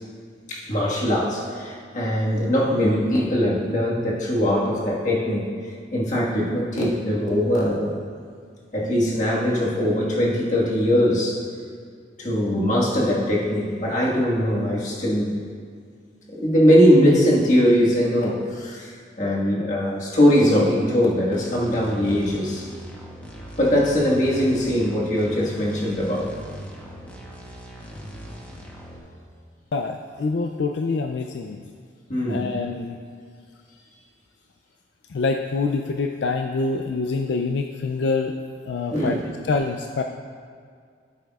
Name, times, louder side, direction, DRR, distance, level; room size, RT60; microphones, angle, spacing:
voice 1, 0.5-5.5 5.9-7.9 8.7-11.4 12.2-15.3 16.3-22.6 23.6-26.3 32.1-32.5 38.9-39.2, equal, 40° left, -4 dB, 1.6 m, -21 dB
sound 1, 21.3-29.0, equal, 10° left, 1.0 m, -39 dB
voice 2, 29.7-31.6 32.3-33.0 35.1-38.3 38.7-39.2 39.5-40.0, left 3 dB, 75° left, 4 dB, 0.4 m, -25 dB
13.0 x 8.1 x 2.4 m, 2.1 s
head